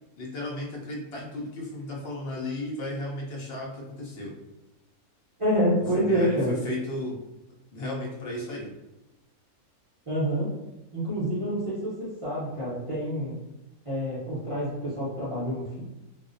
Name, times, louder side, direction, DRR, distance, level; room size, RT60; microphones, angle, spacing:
voice 1, 0.2-4.3 5.9-7.2 7.7-8.7, left 1 dB, 65° left, -3 dB, 0.6 m, -34 dB
voice 2, 5.4-6.5 10.1-10.5 10.9-13.4 13.9-15.8, equal, 50° right, -9 dB, 0.4 m, -27 dB
2.5 x 2.0 x 2.5 m, 0.96 s
omnidirectional pair, 1.5 m